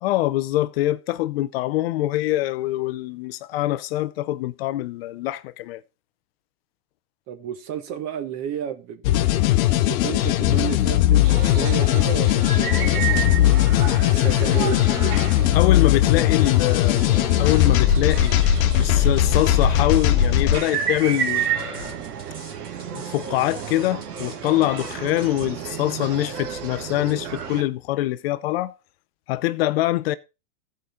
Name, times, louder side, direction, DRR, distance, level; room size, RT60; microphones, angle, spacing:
voice 1, 0.0-5.8 15.5-18.4 18.7-22.0 22.9-28.7 29.3-30.1, left 15 dB, 40° left, 0.4 m, -24 dB
voice 2, 7.3-9.5 9.9-13.6 14.0-15.1, right 9 dB, 35° right, 1.5 m, -32 dB
sound 1, 9.0-20.6, left 13 dB, 60° left, 0.9 m, -19 dB
sound 2, 11.2-27.6, right 8 dB, 80° right, 2.0 m, -31 dB
sound 3, 16.9-25.4, right 3 dB, 20° right, 3.0 m, -45 dB
15.0 x 5.1 x 3.8 m
hypercardioid pair, 130°, 47 cm